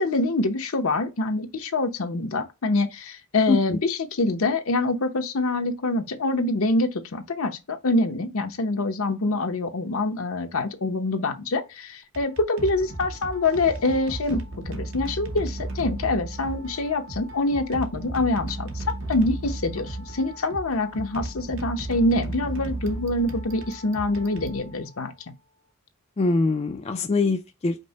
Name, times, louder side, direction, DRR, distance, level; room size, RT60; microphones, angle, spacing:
voice 1, 0.0-18.8 19.1-25.1, left 2 dB, 70° left, 0.8 m, -25 dB
voice 2, 3.5-3.8 26.2-27.8, left 3 dB, 30° left, 0.4 m, -23 dB
sound 1, 12.0-25.2, right 2 dB, 60° right, 0.9 m, -35 dB
5.3 x 2.1 x 4.0 m
head